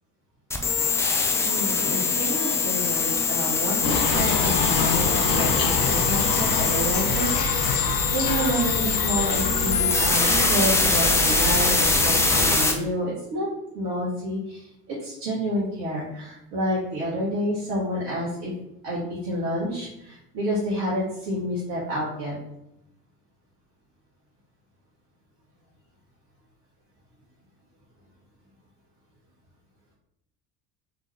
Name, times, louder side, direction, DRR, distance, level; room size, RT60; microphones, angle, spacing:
sound 1, 0.5-12.7, left 4 dB, 5° left, 0.4 m, -23 dB
voice 1, 1.4-13.5 13.7-18.5 18.8-22.3, equal, 55° right, -6 dB, 1.5 m, -29 dB
sound 2, 3.8-12.6, left 3 dB, 80° left, 0.8 m, -27 dB
3.7 x 3.7 x 3.2 m, 0.83 s
figure-of-eight pair, 70°, 48 cm